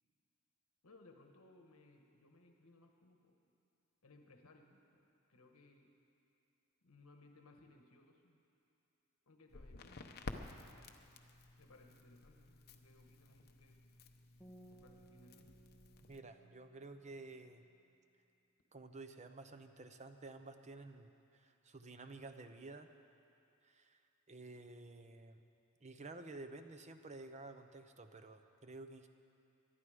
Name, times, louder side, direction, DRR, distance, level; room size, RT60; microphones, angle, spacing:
voice 1, 0.8-3.4 4.0-5.9 6.8-8.4 9.3-10.8 11.6-13.8 14.7-15.5, left 2 dB, 75° left, 3 dB, 1.2 m, -64 dB
Crackle, 9.5-16.2, left 2 dB, 45° left, 0.8 m, -53 dB
sound 1, 14.4-17.6, right 1 dB, ahead, 1.8 m, -62 dB
voice 2, 16.0-17.7 18.7-22.9 23.6-24.0 24.3-25.4 25.8-29.1, right 2 dB, 30° right, 8 dB, 0.7 m, -52 dB
22.0 x 11.5 x 4.9 m, 2.7 s
head